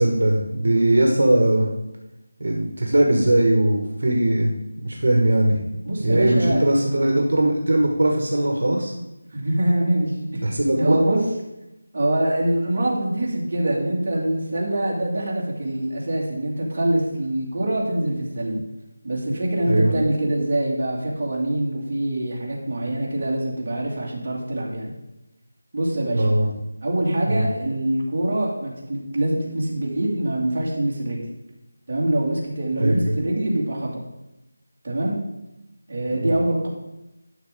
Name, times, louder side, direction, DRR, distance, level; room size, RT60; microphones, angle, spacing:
voice 1, 0.0-1.7 2.4-5.6 6.0-8.9 10.4-11.0 19.6-19.9 26.1-26.5 27.2-27.5 32.8-33.2 36.2-36.3, right 1 dB, 65° right, 0 dB, 1.6 m, -20 dB
voice 2, 5.8-6.6 9.3-11.2 11.9-18.6 19.0-24.9 25.7-26.3 26.8-31.2 31.9-33.9 34.8-35.1 35.9-36.7, right 1 dB, 35° right, -4 dB, 2.3 m, -24 dB
11.5 x 6.0 x 3.8 m, 0.92 s
figure-of-eight pair, 175°, 0 cm